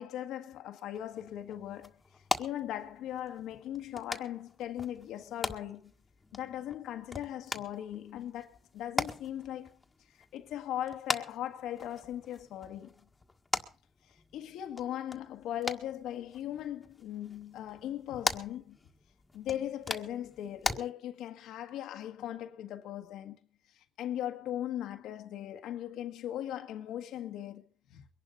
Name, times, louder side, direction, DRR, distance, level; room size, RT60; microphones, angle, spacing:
voice 1, 0.0-1.9 2.4-5.9 6.3-9.8 10.3-13.0 14.3-18.8 19.3-23.4 24.0-28.1, left 11 dB, 85° left, 1.6 m, -39 dB
sound 1, 0.9-20.8, left 3 dB, 25° left, 1.7 m, -41 dB
23.0 x 11.5 x 3.9 m
cardioid pair, 90°, 0 cm